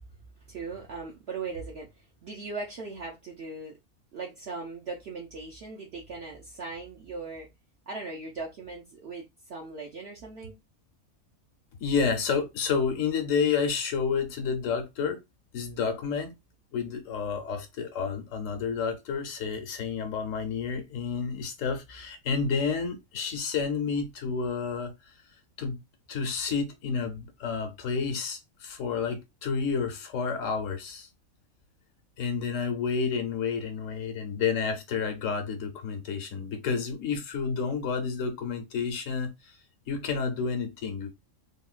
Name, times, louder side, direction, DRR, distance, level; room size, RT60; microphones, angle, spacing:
voice 1, 0.5-3.8 4.1-7.5 7.9-10.5, right 4 dB, 55° right, 0.8 m, -39 dB
voice 2, 11.8-15.2 15.5-16.3 16.7-25.1 25.6-25.8 26.1-31.1 32.2-39.6 39.9-41.1, left 5 dB, 70° left, 1.0 m, -30 dB
3.6 x 2.2 x 2.4 m
omnidirectional pair, 1.5 m